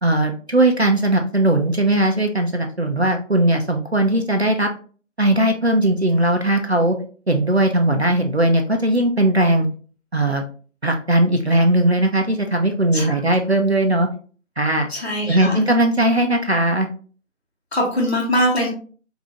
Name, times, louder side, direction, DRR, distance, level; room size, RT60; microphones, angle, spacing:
voice 1, 0.0-4.7 5.2-7.0 7.3-9.7 10.1-10.4 10.8-14.1 14.6-14.9 15.3-16.9, right 1 dB, 55° right, 4 dB, 0.5 m, -18 dB
voice 2, 14.9-15.6 17.7-18.7, equal, 50° left, -2 dB, 1.1 m, -22 dB
3.8 x 2.6 x 2.9 m, 0.40 s
figure-of-eight pair, 175°, 39 cm